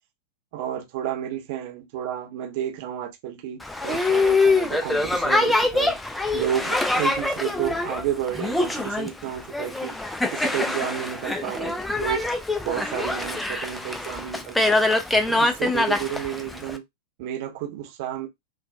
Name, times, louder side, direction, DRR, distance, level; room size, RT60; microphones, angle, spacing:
voice 1, 0.5-6.0 6.3-10.0 10.3-12.2 12.6-14.9 15.3-16.8 17.2-18.3, right 10 dB, 50° right, 0.8 m, -31 dB
Boat Water vehicle, 3.6-16.8, left 2 dB, 5° left, 0.3 m, -24 dB
2.3 x 2.2 x 2.5 m
figure-of-eight pair, 90°, 0 cm